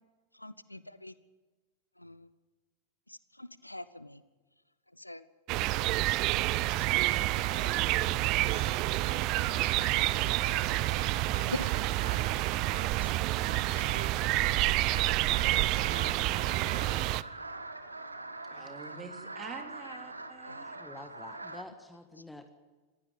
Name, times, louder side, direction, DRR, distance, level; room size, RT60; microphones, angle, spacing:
voice 1, 0.3-1.1 2.0-2.3 3.1-4.2 4.9-5.2 5.5-6.5 7.6-7.9 8.5-8.7 9.6-9.7 10.1-10.7 11.4-11.8 12.6-13.4 13.7-14.0 19.8-20.0 20.5-20.6 20.9-21.1, left 1 dB, 85° left, 16 dB, 0.8 m, -45 dB
sound 1, 5.5-17.2, right 18 dB, 40° right, 0.6 m, -28 dB
sound 2, 6.5-21.6, right 2 dB, 80° right, 1.4 m, -44 dB
voice 2, 18.5-20.8, right 4 dB, 20° right, 3 dB, 3.6 m, -46 dB
voice 3, 20.7-22.5, left 2 dB, 5° left, 7 dB, 1.5 m, -48 dB
20.5 x 15.5 x 8.9 m, 1.3 s
figure-of-eight pair, 90°, 0 cm